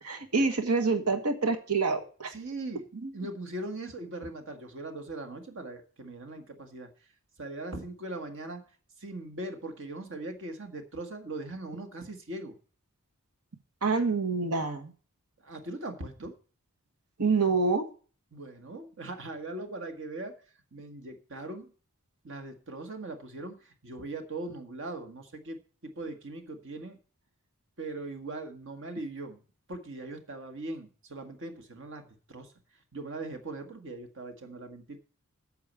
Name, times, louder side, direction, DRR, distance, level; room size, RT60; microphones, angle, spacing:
voice 1, 0.0-2.3 3.0-3.1 13.8-14.9 17.2-17.8, right 4 dB, 85° right, 6 dB, 1.6 m, -27 dB
voice 2, 2.3-2.8 3.1-6.9 7.4-8.6 9.0-12.5 15.4-16.3 18.3-20.3 20.7-21.7 22.2-27.0 27.8-29.4 29.7-32.5 32.9-35.0, right 2 dB, 60° right, 6 dB, 1.7 m, -40 dB
8.7 x 6.9 x 8.1 m, 0.40 s
head